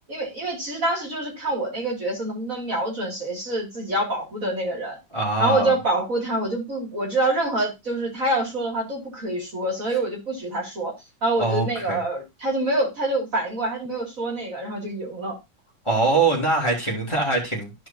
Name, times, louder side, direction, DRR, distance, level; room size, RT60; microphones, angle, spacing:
voice 1, 0.1-5.0 5.4-10.9 11.2-15.3, right 2 dB, 40° right, 3.1 m, -26 dB
voice 2, 5.1-5.7 11.4-12.0 15.8-17.9, right 3 dB, 15° left, 2.6 m, -23 dB
14.5 x 4.8 x 2.8 m
omnidirectional pair, 2.1 m